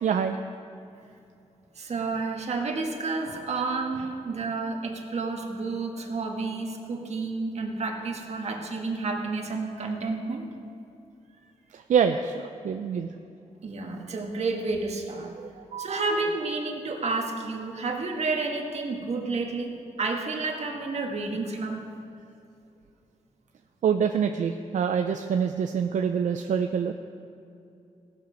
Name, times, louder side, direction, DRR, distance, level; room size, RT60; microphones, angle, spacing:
voice 1, 0.0-0.4 11.7-13.1 15.6-16.0 23.8-26.9, right 7 dB, 80° right, 6 dB, 0.5 m, -26 dB
voice 2, 1.8-10.4 13.6-15.4 15.8-21.8, right 3 dB, 60° right, 1 dB, 1.5 m, -30 dB
17.5 x 6.8 x 5.1 m, 2.6 s
wide cardioid pair, 100°, 13 cm